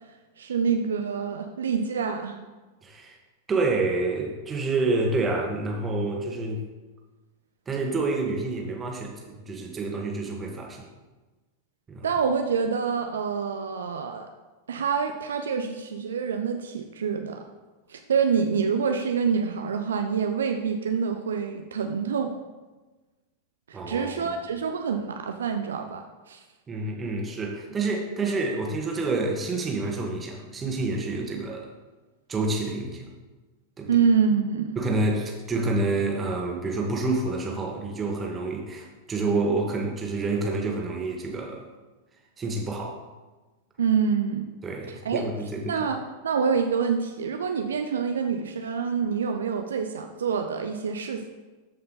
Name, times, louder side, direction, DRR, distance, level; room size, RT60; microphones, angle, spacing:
voice 1, 0.4-2.4 12.0-14.3 14.7-17.4 17.9-22.3 23.7-26.4 33.9-34.8 43.8-44.4 44.9-45.2 45.7-51.4, right 6 dB, 65° right, 5 dB, 0.7 m, -26 dB
voice 2, 2.8-3.2 3.5-6.6 7.7-10.8 11.9-12.1 23.7-24.3 26.7-31.7 32.3-33.1 33.8-33.9 34.8-41.6 42.4-43.0 44.6-45.8, right 3 dB, 20° right, 0 dB, 1.8 m, -28 dB
13.5 x 5.5 x 4.0 m, 1.2 s
figure-of-eight pair, 90°, 0 cm